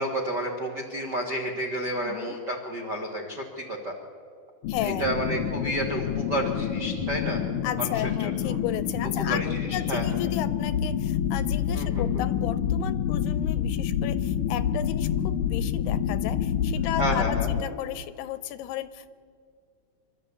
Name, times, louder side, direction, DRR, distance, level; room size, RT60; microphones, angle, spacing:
voice 1, 0.0-3.9 4.8-7.4 7.8-8.6 9.2-10.0 11.7-12.2 17.0-17.5, right 1 dB, 60° right, 1 dB, 1.1 m, -31 dB
voice 2, 2.0-2.4 4.7-5.1 7.6-19.1, left 13 dB, 85° left, 13 dB, 2.7 m, -34 dB
sound 1, 4.6-17.6, left 8 dB, 70° left, 2.0 m, -27 dB
26.0 x 12.5 x 8.4 m, 2.2 s
omnidirectional pair, 4.7 m